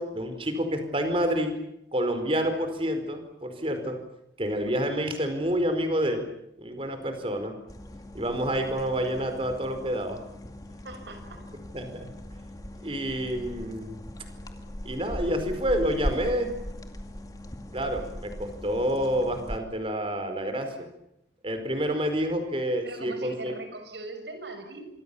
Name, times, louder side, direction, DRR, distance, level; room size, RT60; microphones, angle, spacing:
voice 1, 0.0-1.5 1.9-4.0 4.4-6.3 6.6-7.5 8.1-10.2 11.5-12.1 12.8-14.0 14.8-16.5 17.7-20.9 21.4-23.5, equal, 30° right, 7 dB, 4.7 m, -28 dB
sound 1, 7.7-19.6, equal, 20° left, 2.3 m, -39 dB
voice 2, 10.8-11.5 22.8-24.9, right 2 dB, 80° right, 7 dB, 6.5 m, -40 dB
27.0 x 24.0 x 7.0 m, 0.79 s
head